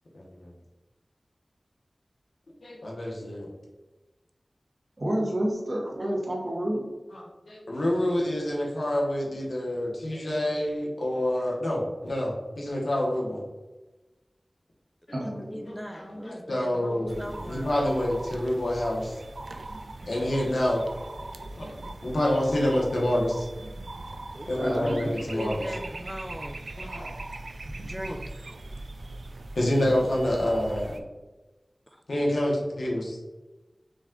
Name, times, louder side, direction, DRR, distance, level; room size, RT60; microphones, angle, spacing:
voice 1, 2.6-3.5 7.1-13.4 15.4-19.2 20.1-20.8 21.6-21.7 22.0-23.5 24.4-25.6 26.8-27.0 29.5-31.0 32.1-33.2, left 1 dB, 90° left, -3 dB, 1.0 m, -27 dB
voice 2, 5.0-6.9 15.1-15.5 24.6-25.1, right 1 dB, 50° right, -2 dB, 1.1 m, -29 dB
voice 3, 15.1-17.8 24.3-26.6 27.8-28.3 31.9-32.0, equal, ahead, 6 dB, 0.4 m, -39 dB
sound 1, 17.1-31.0, right 2 dB, 85° right, 0.3 m, -40 dB
5.1 x 2.4 x 3.7 m, 1.1 s
wide cardioid pair, 65°, 0 cm